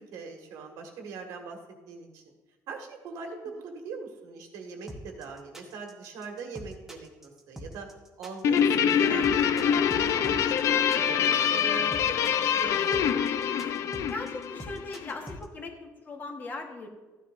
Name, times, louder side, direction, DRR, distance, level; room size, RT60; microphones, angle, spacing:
voice 1, 0.0-1.6 1.9-2.2 2.7-7.9 8.2-13.3, right 4 dB, 75° right, 3 dB, 1.7 m, -41 dB
sound 1, 4.9-15.5, equal, 5° right, 1.0 m, -43 dB
Guitar, 8.4-15.1, left 8 dB, 55° left, 0.5 m, -25 dB
voice 2, 14.0-16.9, left 3 dB, 30° left, 3 dB, 1.2 m, -39 dB
13.5 x 9.8 x 2.5 m, 1.2 s
cardioid pair, 150°, 6 cm